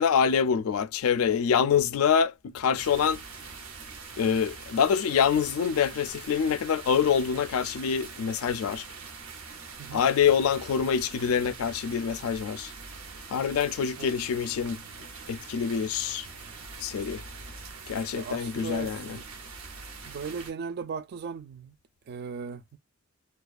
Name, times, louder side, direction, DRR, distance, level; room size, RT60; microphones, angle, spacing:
voice 1, 0.0-3.2 4.2-8.9 9.9-12.7 13.3-14.8 15.3-16.3 16.8-17.2 17.9-19.2, left 7 dB, 85° left, 0.4 m, -25 dB
sound 1, 2.8-20.5, right 4 dB, 90° right, 0.7 m, -43 dB
voice 2, 18.1-19.3 20.0-21.7 22.1-22.8, right 5 dB, 50° right, 0.3 m, -37 dB
2.4 x 2.2 x 2.3 m
head